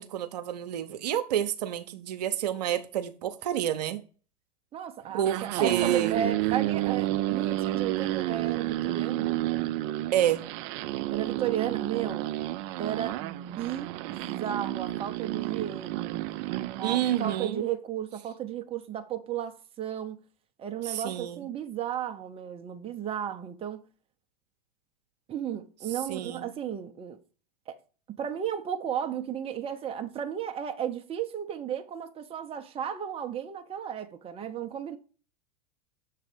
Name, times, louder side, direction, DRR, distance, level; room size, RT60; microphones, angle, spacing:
voice 1, 0.0-4.0 5.1-6.2 10.1-10.4 16.8-17.6 20.8-21.4 26.1-26.5, right 11 dB, 75° right, 0.8 m, -29 dB
voice 2, 4.7-9.3 11.1-12.3 12.8-16.2 16.8-20.2 20.6-23.9 25.3-27.2 27.7-27.8 28.2-35.0, right 9 dB, 25° right, 0.8 m, -34 dB
sound 1, 5.1-17.4, right 16 dB, 50° right, 0.5 m, -30 dB
7.2 x 3.3 x 5.0 m
hypercardioid pair, 100°, 21 cm